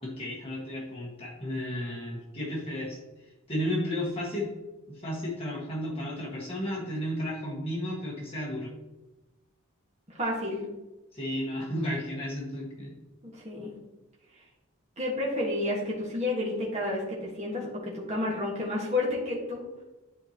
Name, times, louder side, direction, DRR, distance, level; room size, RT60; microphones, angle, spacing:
voice 1, 0.0-3.0 3.5-4.5 4.9-8.7 11.1-12.9, equal, 25° left, -5 dB, 1.6 m, -33 dB
voice 2, 10.2-10.6 13.2-13.7 15.0-19.6, left 2 dB, 30° right, -4 dB, 1.6 m, -30 dB
10.0 x 4.5 x 2.9 m, 1.1 s
head